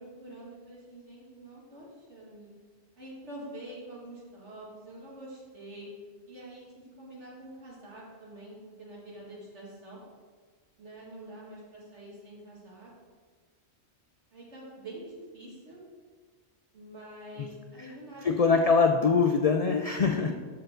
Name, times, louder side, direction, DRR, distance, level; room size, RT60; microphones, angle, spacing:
voice 1, 0.0-2.5 3.0-5.9 6.3-10.0 10.8-12.9 14.3-15.8 16.7-18.7 20.0-20.3, right 1 dB, 70° right, -6 dB, 2.7 m, -46 dB
voice 2, 18.2-20.3, left 5 dB, 65° left, 4 dB, 0.3 m, -23 dB
12.5 x 4.7 x 3.8 m, 1.5 s
omnidirectional pair, 1.2 m